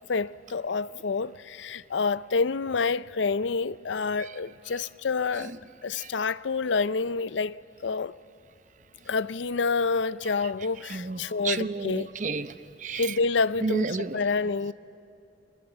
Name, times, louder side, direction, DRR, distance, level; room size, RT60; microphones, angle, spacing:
voice 1, 0.1-5.5 5.8-8.1 9.1-12.1 13.0-14.7, left 4 dB, 90° left, 0.5 m, -28 dB
voice 2, 11.4-12.5 12.8-13.1 13.6-14.2, right 4 dB, 45° right, 0.7 m, -30 dB
30.0 x 24.5 x 8.1 m
head